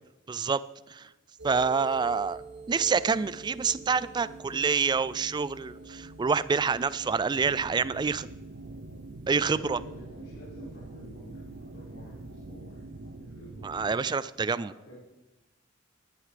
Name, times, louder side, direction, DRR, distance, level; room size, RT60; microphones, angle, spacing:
voice 1, 0.3-0.6 0.9-1.1 1.4-2.4 2.7-8.3 9.3-9.8 13.6-14.7, right 5 dB, 20° right, 17 dB, 0.3 m, -27 dB
sound 1, 1.4-13.2, right 3 dB, 65° right, 1.4 m, -47 dB
sound 2, 7.3-14.0, right 3 dB, 90° right, 0.7 m, -46 dB
voice 2, 9.5-13.7 14.5-15.0, equal, 65° left, -9 dB, 5.8 m, -49 dB
18.5 x 11.5 x 3.4 m, 1.0 s
head